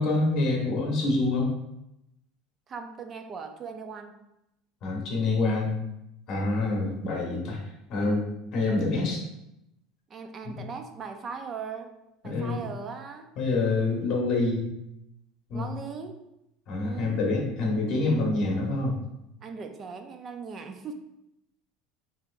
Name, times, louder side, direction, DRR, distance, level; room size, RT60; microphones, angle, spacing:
voice 1, 0.0-1.5 4.8-5.8 6.3-7.6 7.9-9.3 10.4-10.6 12.2-12.7 13.4-14.7 15.5-15.7 16.7-19.0, left 2 dB, 30° left, -2 dB, 1.0 m, -26 dB
voice 2, 2.7-4.2 6.7-7.0 10.1-11.9 12.2-13.3 15.5-16.2 16.8-17.2 19.4-20.9, right 5 dB, 25° right, 6 dB, 0.4 m, -39 dB
5.5 x 2.8 x 2.4 m, 0.86 s
cardioid pair, 175°, 0 cm